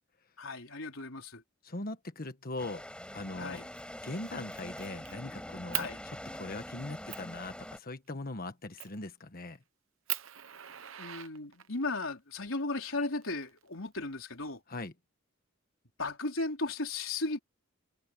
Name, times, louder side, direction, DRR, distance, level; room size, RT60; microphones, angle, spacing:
voice 1, 0.4-1.4 3.4-3.7 5.7-6.0 11.0-14.6 16.0-17.4, left 3 dB, 70° left, 4.3 m, -36 dB
voice 2, 1.6-2.8 3.1-3.6 4.0-5.9 6.3-9.6 14.7-14.9, left 2 dB, 45° left, 1.4 m, -40 dB
sound 1, 2.6-7.8, left 1 dB, 5° left, 5.3 m, -44 dB
Fire, 3.5-3.8 4.2-5.1 5.7-5.9 6.5-6.6 7.1-7.3 8.8-9.1 9.5-9.6 10.1-11.9 12.9-13.9, right 14 dB, 70° right, 1.0 m, -39 dB
head